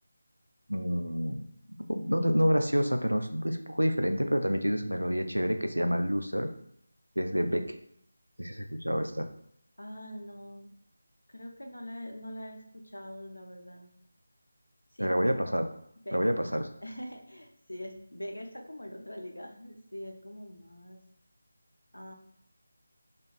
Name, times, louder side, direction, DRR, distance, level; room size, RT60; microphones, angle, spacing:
voice 1, 0.7-1.5 1.9-6.5 7.2-7.7 8.4-9.3 15.0-15.7 16.1-16.6, equal, 90° right, 6 dB, 0.3 m, -28 dB
voice 2, 9.8-10.7 11.3-13.9 14.9-15.1 16.0-16.3 16.8-21.0 21.9-22.1, equal, 80° left, 3 dB, 0.5 m, -43 dB
2.6 x 2.2 x 2.2 m, 0.71 s
figure-of-eight pair, 160°, 0 cm